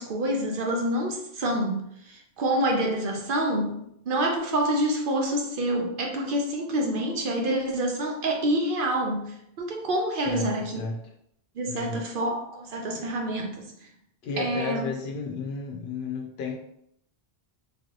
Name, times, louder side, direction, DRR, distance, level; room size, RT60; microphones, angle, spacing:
voice 1, 0.0-10.8 11.6-13.7 14.4-14.9, right 1 dB, 60° right, 1 dB, 0.8 m, -27 dB
voice 2, 10.1-11.0 11.7-12.0 14.2-16.5, left 4 dB, 85° left, -1 dB, 0.9 m, -33 dB
3.2 x 2.7 x 3.0 m, 0.74 s
omnidirectional pair, 1.0 m